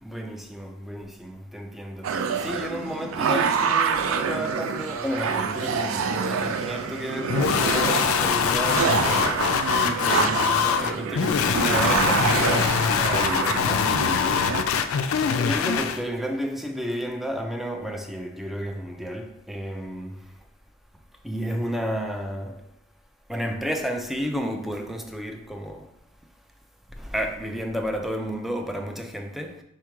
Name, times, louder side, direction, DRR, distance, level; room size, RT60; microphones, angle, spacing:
voice 1, 0.0-2.1 2.4-9.5 10.0-13.9 15.1-20.2 21.2-22.6 23.3-25.9 27.0-29.6, equal, ahead, 0.4 m, -32 dB
sound 1, 2.0-14.6, right 6 dB, 75° right, 0.4 m, -26 dB
sound 2, 7.3-16.0, left 6 dB, 80° left, 0.3 m, -23 dB
4.5 x 2.4 x 4.5 m
head